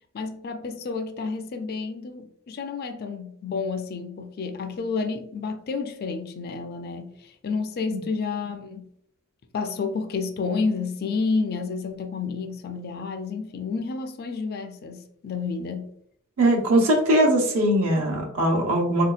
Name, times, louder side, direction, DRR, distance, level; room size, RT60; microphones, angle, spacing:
voice 1, 0.1-8.9 9.5-15.9, left 4 dB, 45° left, 0.4 m, -30 dB
voice 2, 16.4-19.1, right 1 dB, 80° right, 0.9 m, -21 dB
3.8 x 2.7 x 2.4 m
head